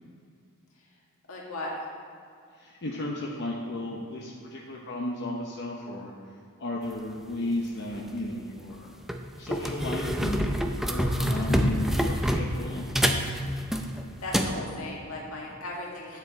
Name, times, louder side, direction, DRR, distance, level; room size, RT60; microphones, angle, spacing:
voice 1, 1.3-1.8 14.2-16.2, left 1 dB, 70° left, -3 dB, 1.9 m, -36 dB
voice 2, 2.5-6.1 6.6-8.9 9.4-10.5 10.8-12.8, left 1 dB, 55° left, -2 dB, 0.8 m, -34 dB
sound 1, 7.9-8.1 8.7-8.8 9.1-14.6, equal, ahead, 0.5 m, -27 dB
9.5 x 7.3 x 4.3 m, 2.4 s
head